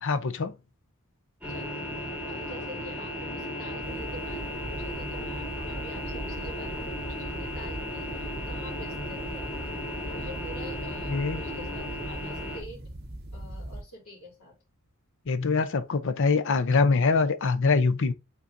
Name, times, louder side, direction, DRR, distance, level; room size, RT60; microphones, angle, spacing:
voice 1, 0.0-0.5 11.1-11.4 15.3-18.1, left 4 dB, 60° left, 0.6 m, -24 dB
sound 1, 1.4-12.6, left 1 dB, 5° right, 3.4 m, -35 dB
voice 2, 1.5-9.5 10.1-12.8 13.3-14.5, equal, 80° left, 3.3 m, -47 dB
sound 2, 3.8-13.8, right 1 dB, 50° right, 1.4 m, -40 dB
9.8 x 4.0 x 2.6 m
head